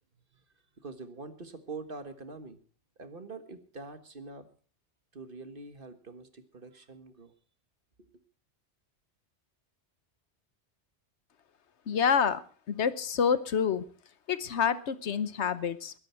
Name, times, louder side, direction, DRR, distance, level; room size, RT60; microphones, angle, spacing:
voice 1, 0.8-2.6 3.0-4.5 5.1-7.3 8.0-8.1, right 3 dB, 50° right, 10 dB, 1.7 m, -44 dB
voice 2, 11.9-12.4 12.7-13.8 14.3-15.9, left 7 dB, 75° left, 15 dB, 1.2 m, -27 dB
21.5 x 11.5 x 4.5 m, 0.41 s
omnidirectional pair, 1.2 m